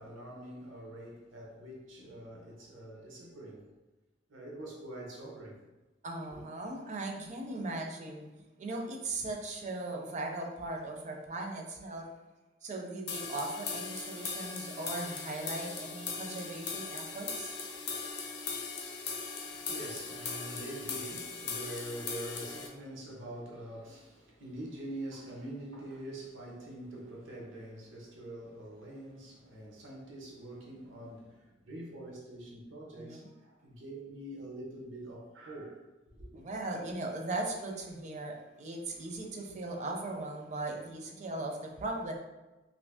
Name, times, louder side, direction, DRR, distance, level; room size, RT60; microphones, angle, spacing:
voice 1, 0.0-3.7 4.3-5.6 6.3-6.4 19.4-35.8 36.1-36.3, right 1 dB, 90° right, 0.8 m, -45 dB
voice 2, 6.0-8.3 8.6-12.1 12.6-17.6 33.0-33.3 36.4-42.1, right 2 dB, 40° right, 0.5 m, -38 dB
sound 1, 13.1-22.7, left 4 dB, 60° left, 0.6 m, -39 dB
2.7 x 2.6 x 3.4 m
head